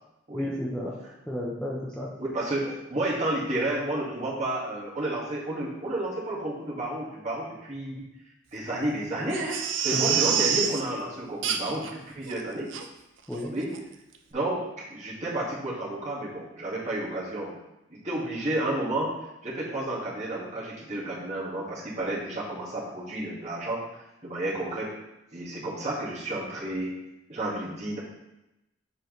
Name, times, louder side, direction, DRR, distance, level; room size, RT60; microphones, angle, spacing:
voice 1, 0.3-0.9 1.3-2.1 2.6-2.7 9.9-10.2 13.3-13.5, left 1 dB, 5° left, -5 dB, 0.6 m, -32 dB
voice 2, 2.2-8.0 8.5-12.7 13.5-13.7 14.3-17.6 17.9-19.1 19.4-23.8 24.2-24.9 25.3-27.0 27.3-28.0, right 1 dB, 35° right, -7 dB, 1.8 m, -31 dB
Crying sobbing, 9.3-10.8 11.4-11.9 12.3-12.4 12.7-12.8 13.3-13.5 13.7-13.8, right 8 dB, 75° right, 0.6 m, -27 dB
7.1 x 4.7 x 3.1 m, 0.93 s
head